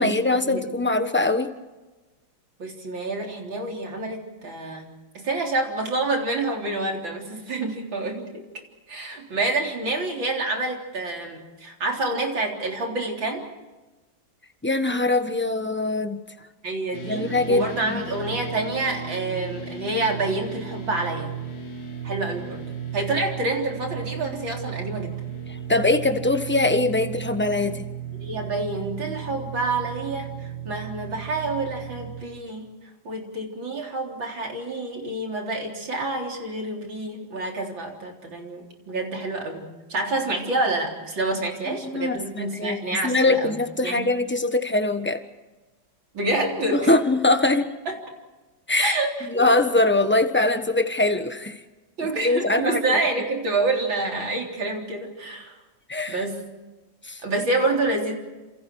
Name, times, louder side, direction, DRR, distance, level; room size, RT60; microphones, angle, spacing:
voice 1, 0.0-1.5 14.6-16.2 17.1-18.0 25.5-27.8 41.7-42.8 43.0-45.2 46.7-47.7 48.7-48.9 49.2-51.6 52.2-52.8 55.9-56.2 57.0-57.2, left 2 dB, 5° left, 8 dB, 0.9 m, -22 dB
voice 2, 2.6-8.4 8.9-13.5 16.6-21.4 22.0-22.6 22.9-25.2 28.2-32.6 33.0-43.6 43.8-44.1 46.1-46.9 47.9-48.0 48.8-49.5 52.0-55.5 56.1-56.4 57.2-58.1, right 2 dB, 75° right, 1 dB, 4.5 m, -28 dB
sound 1, 16.9-32.2, right 8 dB, 80° left, 3.6 m, -35 dB
28.5 x 27.5 x 4.8 m, 1.2 s
omnidirectional pair, 2.1 m